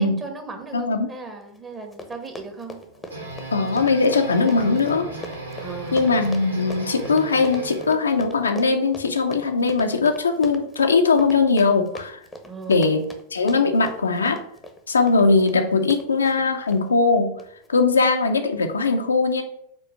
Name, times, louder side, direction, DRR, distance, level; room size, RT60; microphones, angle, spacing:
voice 1, 0.0-2.8 5.6-6.0 12.4-12.8, right 4 dB, 20° right, 5 dB, 1.4 m, -37 dB
voice 2, 0.7-1.1 3.5-5.1 5.9-12.2 12.7-13.0 13.3-14.4 14.9-17.4 17.7-19.4, left 4 dB, 75° left, 5 dB, 0.7 m, -20 dB
Run, 1.5-1.6 1.8-16.8 17.4-17.7 18.0-18.1, left 1 dB, 10° left, 1.0 m, -40 dB
sound 1, 2.8-8.0, right 1 dB, 80° right, 1.6 m, -36 dB
5.3 x 4.3 x 6.1 m, 0.71 s
figure-of-eight pair, 90°, 0 cm